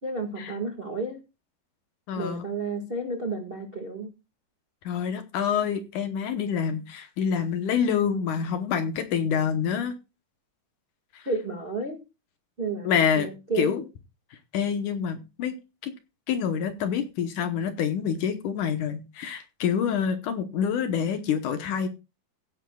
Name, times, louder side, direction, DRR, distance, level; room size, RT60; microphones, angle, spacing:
voice 1, 0.0-1.2 2.1-4.1 11.2-12.0 12.6-12.9 13.1-13.8, right 3 dB, 35° right, 2 dB, 0.8 m, -31 dB
voice 2, 2.1-2.5 4.8-10.0 11.1-11.3 12.8-13.3 13.6-13.8 14.5-15.6 15.8-15.9 16.3-21.9, left 7 dB, 70° left, 8 dB, 2.2 m, -27 dB
16.0 x 11.0 x 2.3 m, 0.29 s
omnidirectional pair, 4.2 m